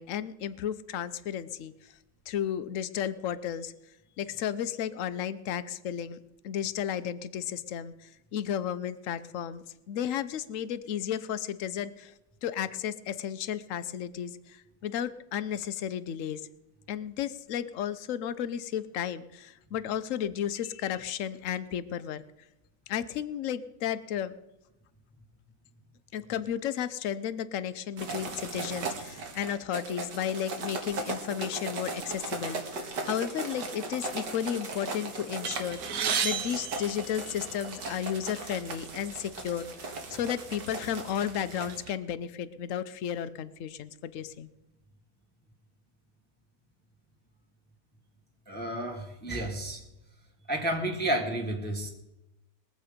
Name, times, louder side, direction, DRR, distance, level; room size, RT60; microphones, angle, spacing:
voice 1, 0.0-1.7 2.3-3.7 4.2-6.2 6.4-12.1 12.4-16.4 16.9-22.2 22.9-24.3 26.1-44.5, left 9 dB, 60° left, 13 dB, 0.9 m, -33 dB
sound 1, 28.0-41.8, right 3 dB, 85° right, 2.2 m, -38 dB
sound 2, 35.4-37.8 38.6-38.7 39.1-39.2 40.1-40.3 40.7-41.9, right 7 dB, 60° right, 1.3 m, -33 dB
voice 2, 48.5-49.8 50.5-51.9, right 1 dB, 5° left, 0 dB, 1.6 m, -31 dB
21.5 x 7.8 x 5.1 m, 0.93 s
omnidirectional pair, 1.8 m